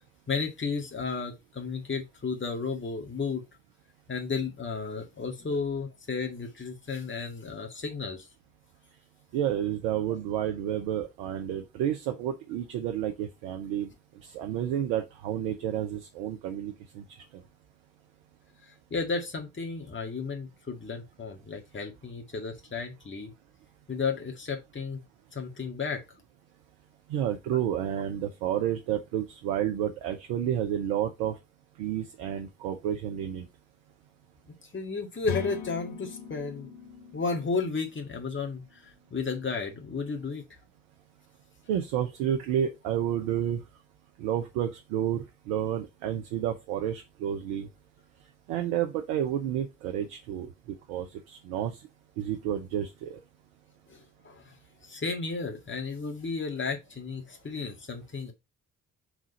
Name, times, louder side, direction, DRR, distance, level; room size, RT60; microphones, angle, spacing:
voice 1, 0.3-3.4 4.1-8.3 18.6-23.3 23.9-25.0 25.3-26.0 34.7-36.7 37.1-40.4 53.9-54.5 54.8-58.3, left 4 dB, 30° left, 2.0 m, -33 dB
voice 2, 9.3-13.9 14.3-17.0 27.1-31.3 31.8-33.5 41.7-43.6 44.2-47.7 48.5-50.5 50.9-51.8 52.2-53.2, right 10 dB, 85° right, 0.8 m, -30 dB
sound 1, 35.2-39.0, left 8 dB, 90° left, 0.9 m, -40 dB
4.8 x 3.7 x 5.3 m
hypercardioid pair, 45°, 36 cm